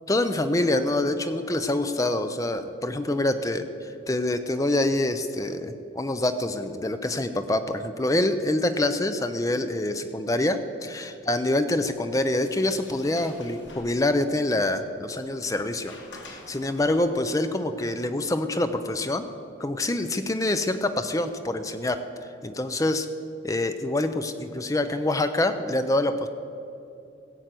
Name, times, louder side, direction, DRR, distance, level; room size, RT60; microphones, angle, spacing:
voice 1, 0.1-15.9 16.3-19.3 19.6-22.0 22.4-23.1 23.4-26.3, left 1 dB, 15° left, 9 dB, 0.5 m, -26 dB
Sliding door, 11.8-17.3, left 2 dB, 75° left, 2.2 m, -49 dB
16.0 x 8.0 x 7.6 m, 2.7 s
head